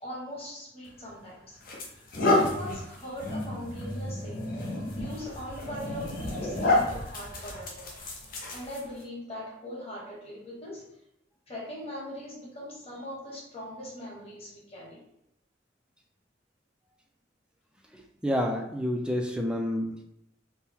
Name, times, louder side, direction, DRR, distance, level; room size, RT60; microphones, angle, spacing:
voice 1, 0.0-1.6 2.3-4.5 4.9-7.9 8.5-10.8 11.5-15.0, left 1 dB, 35° left, -5 dB, 1.4 m, -40 dB
sound 1, 0.9-1.0 1.6-9.0, left 2 dB, 50° left, 0.8 m, -30 dB
voice 2, 17.9-20.0, equal, 5° right, 2 dB, 0.4 m, -29 dB
4.4 x 2.1 x 3.6 m, 0.81 s
head